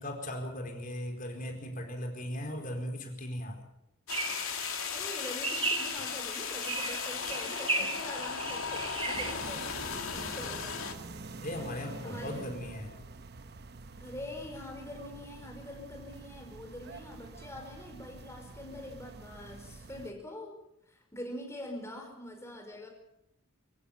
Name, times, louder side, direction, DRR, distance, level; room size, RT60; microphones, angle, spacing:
voice 1, 0.0-3.6 11.4-12.9, equal, 40° left, 3 dB, 4.4 m, -38 dB
sound 1, 4.1-10.9, left 6 dB, 80° left, 2.3 m, -37 dB
sound 2, 4.1-9.3, right 3 dB, 25° right, 2.5 m, -36 dB
voice 2, 4.9-9.7 10.1-10.9 11.6-12.5 14.0-20.6 20.9-22.9, left 1 dB, 15° left, 1 dB, 5.3 m, -44 dB
sound 3, 9.1-20.1, right 3 dB, 50° right, 1.0 m, -47 dB
25.5 x 14.5 x 7.4 m, 0.82 s
head